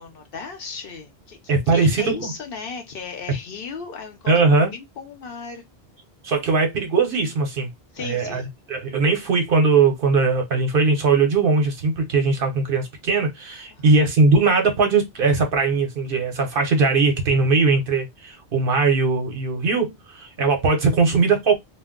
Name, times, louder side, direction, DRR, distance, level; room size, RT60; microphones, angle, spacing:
voice 1, 0.0-5.6 7.9-8.5 13.7-13.9, left 5 dB, 60° left, 0.8 m, -36 dB
voice 2, 1.5-2.3 4.3-4.7 6.2-7.7 8.0-21.6, right 4 dB, 60° right, 0.9 m, -20 dB
2.2 x 2.1 x 3.5 m
omnidirectional pair, 1.1 m